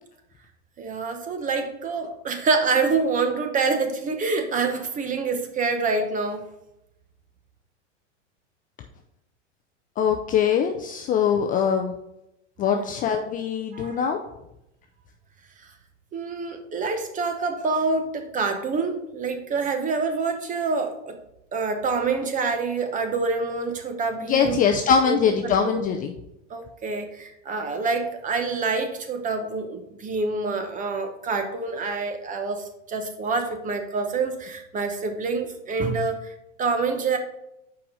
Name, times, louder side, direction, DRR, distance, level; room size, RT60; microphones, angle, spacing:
voice 1, 0.8-6.4 12.7-12.9 13.7-14.0 16.1-21.2 21.5-24.6 25.1-25.8 26.5-37.2, right 4 dB, 20° right, 6 dB, 0.9 m, -26 dB
voice 2, 10.0-11.9 12.6-14.2 24.2-26.1, left 7 dB, 25° left, 4 dB, 0.4 m, -22 dB
5.7 x 5.0 x 5.4 m, 0.86 s
supercardioid pair, 130°, 35 cm